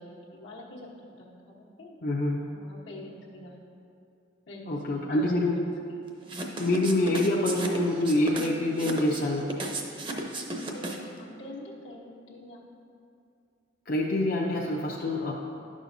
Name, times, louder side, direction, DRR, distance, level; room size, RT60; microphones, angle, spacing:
voice 1, 0.0-2.0 2.4-3.7 4.5-4.8 5.1-5.3 5.9-6.1 10.6-12.6, left 1 dB, 80° left, -5 dB, 1.2 m, -45 dB
voice 2, 2.0-2.4 4.7-5.6 6.6-9.5 13.9-15.3, left 1 dB, 50° left, -4 dB, 0.6 m, -26 dB
sound 1, 6.3-11.2, right 2 dB, 25° right, 0.7 m, -35 dB
11.0 x 6.2 x 2.7 m, 2.5 s
head